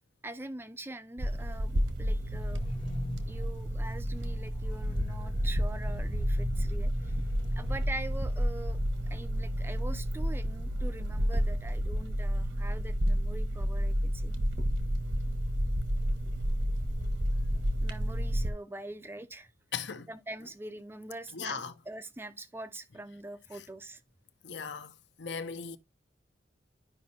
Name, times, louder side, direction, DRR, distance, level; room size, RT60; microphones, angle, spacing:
voice 1, 0.2-2.6 3.3-7.1 7.6-8.8 9.1-14.3 17.8-19.5 20.1-24.0, right 1 dB, 10° right, 0.5 m, -43 dB
sound 1, 1.2-18.5, equal, 75° right, 1.3 m, -30 dB
sound 2, 1.9-8.0, left 1 dB, 30° left, 0.7 m, -41 dB
voice 2, 19.7-20.1 21.3-21.7 23.5-23.6 24.4-24.9 25.2-25.8, left 5 dB, 60° left, 0.7 m, -37 dB
11.0 x 5.3 x 2.8 m
head